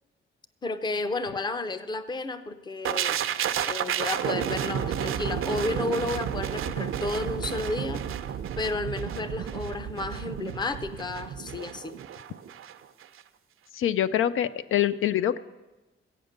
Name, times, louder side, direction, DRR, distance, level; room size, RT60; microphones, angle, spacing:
voice 1, 0.6-8.0 8.6-12.0, left 3 dB, 20° left, 11 dB, 0.6 m, -32 dB
sound 1, 2.8-12.7 13.0-13.2, right 9 dB, 80° right, 0.7 m, -31 dB
voice 2, 13.7-15.4, left 11 dB, 80° left, 14 dB, 0.5 m, -25 dB
15.0 x 8.9 x 6.5 m, 1.1 s
wide cardioid pair, 165°, 21 cm